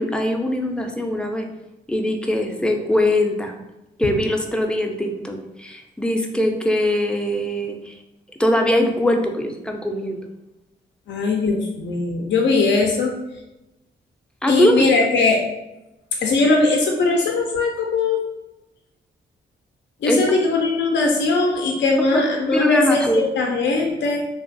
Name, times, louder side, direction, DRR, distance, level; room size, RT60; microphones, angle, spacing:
voice 1, 0.0-1.5 1.9-3.5 4.0-7.8 8.4-10.2 14.4-14.8 20.1-20.2 22.1-23.3, left 1 dB, 5° left, 3 dB, 0.4 m, -21 dB
voice 2, 11.1-13.1 14.5-15.4 16.2-18.2 20.0-24.2, left 3 dB, 65° left, 1 dB, 0.4 m, -20 dB
2.4 x 2.3 x 2.5 m, 0.96 s
supercardioid pair, 50°, 20 cm